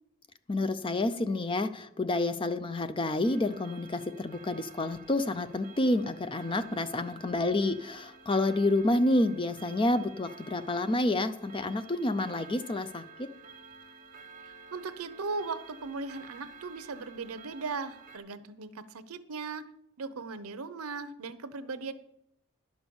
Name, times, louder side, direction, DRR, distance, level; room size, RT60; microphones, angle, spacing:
voice 1, 0.5-13.3, left 2 dB, 25° left, 11 dB, 0.5 m, -29 dB
Clock, 3.2-18.2, right 5 dB, 40° right, 1.2 m, -51 dB
voice 2, 14.4-19.6 20.0-21.9, right 4 dB, 85° right, 13 dB, 0.7 m, -38 dB
10.5 x 6.2 x 7.0 m, 0.78 s
head